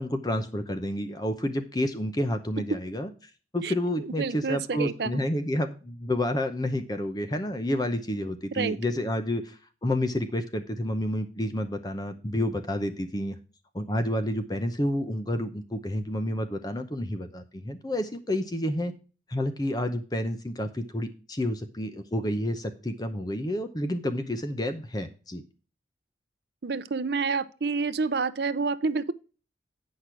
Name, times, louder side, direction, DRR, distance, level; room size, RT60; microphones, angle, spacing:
voice 1, 0.0-3.1 3.5-13.4 13.7-18.9 19.3-25.4, left 1 dB, 20° left, 0.7 m, -29 dB
voice 2, 4.2-5.2 8.5-8.8 26.6-29.1, right 4 dB, 65° right, 0.6 m, -28 dB
8.5 x 6.0 x 4.8 m
head